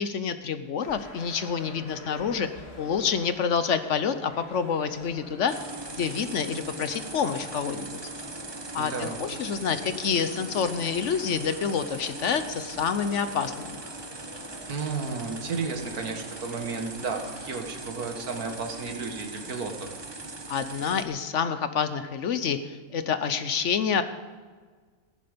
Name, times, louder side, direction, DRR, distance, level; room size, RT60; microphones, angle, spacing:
voice 1, 0.0-2.5 2.8-5.6 6.0-8.0 8.7-13.8 20.5-24.0, left 6 dB, 60° left, 11 dB, 1.0 m, -28 dB
sound 1, 0.8-17.6, left 2 dB, 45° left, 2.2 m, -47 dB
sound 2, 5.5-21.0, right 2 dB, 20° right, 0.9 m, -40 dB
voice 2, 8.8-9.1 14.7-20.0, right 4 dB, 85° right, 4 dB, 2.0 m, -33 dB
15.0 x 11.0 x 5.2 m, 1.5 s
omnidirectional pair, 1.6 m